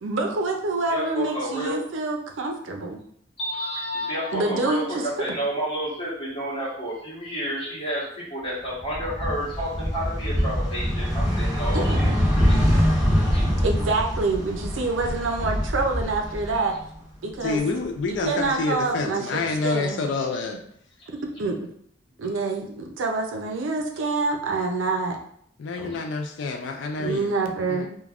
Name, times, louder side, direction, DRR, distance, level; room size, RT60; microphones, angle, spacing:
voice 1, 0.0-3.0 4.3-4.8 11.7-12.2 13.6-16.7 17.2-17.7 18.1-20.1 21.4-21.6 22.2-25.2 25.8-26.0 27.0-27.9, right 3 dB, 90° right, 4 dB, 0.5 m, -26 dB
voice 2, 0.8-1.8 3.4-12.6 13.3-13.6 21.0-21.1 25.9-26.0, equal, 30° left, -8 dB, 1.2 m, -30 dB
sound 1, 8.8-16.9 17.3-18.4, equal, 5° right, 1.1 m, -24 dB
voice 3, 17.4-20.6 25.6-27.3 27.7-27.9, left 3 dB, 65° left, 4 dB, 0.3 m, -28 dB
3.3 x 2.2 x 2.4 m, 0.66 s
head